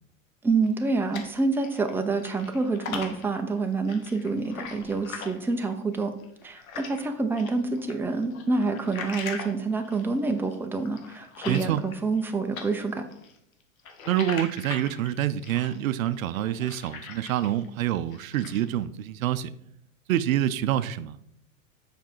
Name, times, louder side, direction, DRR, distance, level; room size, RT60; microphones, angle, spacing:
voice 1, 0.4-6.1 6.4-13.1, right 3 dB, 5° right, 4 dB, 0.7 m, -27 dB
sound 1, 0.6-1.9 2.2-7.0 7.4-12.3 12.5-17.7 18.0-18.7, left 5 dB, 80° left, 1.4 m, -40 dB
voice 2, 11.5-11.8 14.1-19.5 20.1-21.2, right 12 dB, 75° right, 14 dB, 0.6 m, -27 dB
7.2 x 5.1 x 4.5 m, 0.75 s
hypercardioid pair, 110°, 41 cm